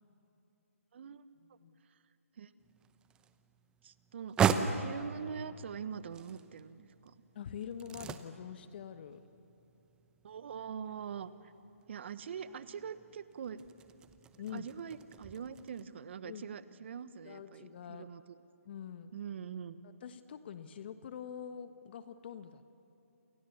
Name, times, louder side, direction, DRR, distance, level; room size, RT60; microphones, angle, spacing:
voice 1, 0.9-1.2 2.4-2.5 3.8-4.4 4.8-7.1 10.2-11.5 11.9-13.6 14.5-18.4 19.1-19.9, right 7 dB, 50° right, 14 dB, 1.2 m, -43 dB
sound 1, 2.6-15.8, right 7 dB, 10° right, 0.8 m, -39 dB
voice 2, 7.3-9.2 14.4-14.7 16.2-16.8 17.2-18.1 18.6-19.1 19.8-22.6, left 8 dB, 40° left, 10 dB, 1.3 m, -45 dB
29.0 x 29.0 x 7.2 m, 2.9 s
figure-of-eight pair, 150°, 8 cm